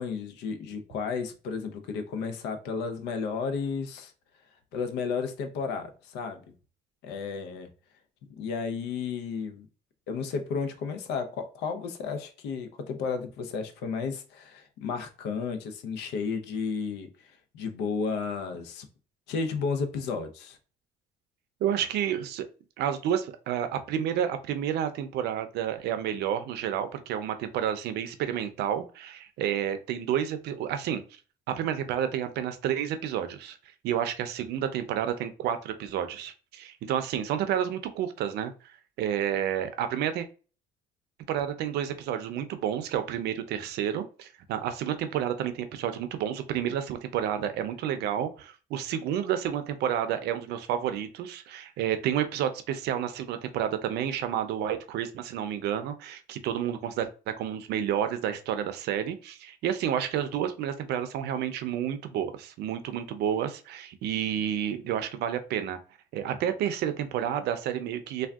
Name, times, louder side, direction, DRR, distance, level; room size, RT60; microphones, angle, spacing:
voice 1, 0.0-4.1 4.7-6.4 7.0-7.7 8.4-9.7 10.1-17.1 17.5-18.9 19.3-20.6, left 5 dB, 85° left, 0.6 m, -33 dB
voice 2, 21.6-22.5 22.8-31.0 31.5-33.6 33.8-40.3 41.3-65.8 66.1-68.3, right 9 dB, 75° right, 0.5 m, -30 dB
3.5 x 2.3 x 2.3 m
cardioid pair, 110°, 17 cm